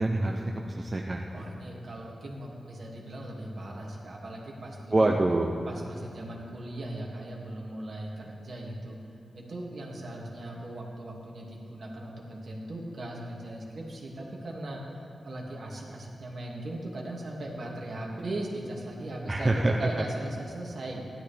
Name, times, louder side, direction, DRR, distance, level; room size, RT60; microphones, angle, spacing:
voice 1, 0.0-1.4 4.9-5.6 19.3-19.8, right 2 dB, 25° right, 1 dB, 0.6 m, -26 dB
voice 2, 1.3-5.2 5.7-9.0 9.3-14.8 15.2-21.0, right 1 dB, 55° right, -2 dB, 2.1 m, -38 dB
16.0 x 12.0 x 3.4 m, 2.4 s
wide cardioid pair, 155°, 0 cm